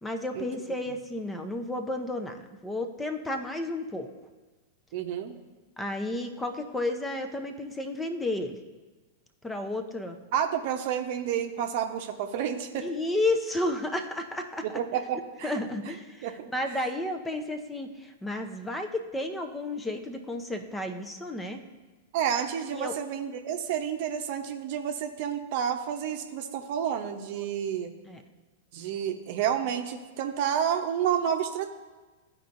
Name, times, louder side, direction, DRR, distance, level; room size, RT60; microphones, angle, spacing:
voice 1, 0.0-4.1 5.8-8.6 9.4-10.2 12.8-14.8 15.4-21.6 22.7-23.0 27.4-27.5 28.1-28.2, left 1 dB, 10° left, 6 dB, 0.7 m, -32 dB
voice 2, 4.9-5.4 10.3-12.9 14.6-15.6 16.2-16.8 22.1-27.9 28.7-31.7, right 9 dB, 55° right, 5 dB, 0.8 m, -30 dB
13.5 x 4.6 x 2.6 m, 1.3 s
hypercardioid pair, 100°, 0 cm